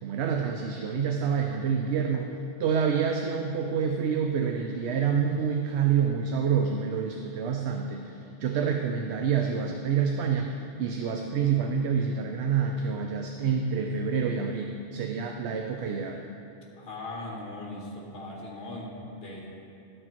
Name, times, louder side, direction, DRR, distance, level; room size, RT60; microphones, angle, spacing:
voice 1, 0.0-2.3 2.6-16.2, right 6 dB, 70° right, 3 dB, 0.8 m, -27 dB
voice 2, 16.8-19.5, left 2 dB, 50° left, -2 dB, 1.7 m, -39 dB
12.0 x 6.6 x 4.4 m, 2.7 s
omnidirectional pair, 1.2 m